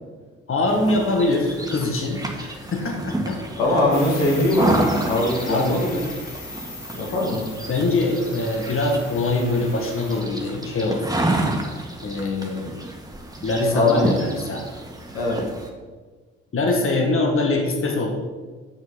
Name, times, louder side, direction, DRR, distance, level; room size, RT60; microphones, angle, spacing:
voice 1, 0.5-3.5 5.5-5.8 7.6-11.0 12.0-12.7 13.4-14.6 16.5-18.2, left 2 dB, 40° left, 2 dB, 1.8 m, -23 dB
sound 1, 0.7-15.7, right 1 dB, 10° right, 1.9 m, -30 dB
voice 2, 3.6-4.8 5.1-6.0 7.0-7.4 13.7-14.1 15.1-15.4, left 2 dB, 80° left, -2 dB, 2.1 m, -21 dB
sound 2, 3.9-10.2, left 3 dB, 60° left, 2.9 m, -38 dB
8.5 x 6.2 x 5.7 m, 1.4 s
hypercardioid pair, 45°, 32 cm